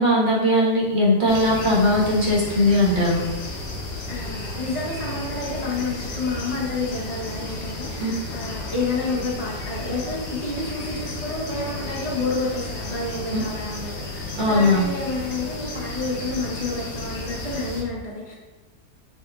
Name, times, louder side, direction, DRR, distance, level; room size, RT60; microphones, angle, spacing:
voice 1, 0.0-3.2 8.0-8.1 13.3-13.4 14.4-14.9, left 1 dB, 35° right, -6 dB, 1.2 m, -19 dB
sound 1, 1.3-17.8, left 2 dB, 80° left, 1.4 m, -33 dB
voice 2, 4.1-18.3, left 3 dB, 40° left, -4 dB, 0.5 m, -29 dB
5.8 x 3.7 x 2.3 m, 1.2 s
omnidirectional pair, 1.8 m